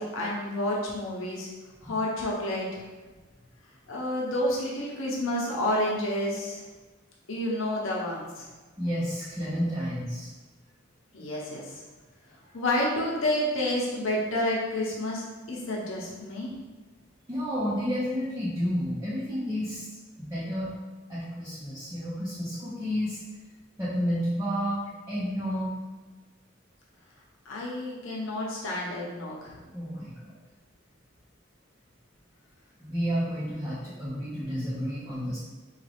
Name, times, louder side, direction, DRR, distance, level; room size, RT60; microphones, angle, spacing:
voice 1, 0.0-1.5 1.8-2.8 3.9-6.6 7.3-8.5 11.1-11.8 12.5-16.5 27.4-29.6, left 1 dB, 80° left, -4 dB, 0.9 m, -29 dB
voice 2, 8.8-10.3 12.4-12.5 17.3-19.9 20.2-20.7 21.1-23.2 23.8-24.8 25.1-25.7 29.7-30.4 32.8-35.4, equal, 15° right, -10 dB, 0.7 m, -31 dB
3.6 x 2.4 x 3.4 m, 1.3 s
head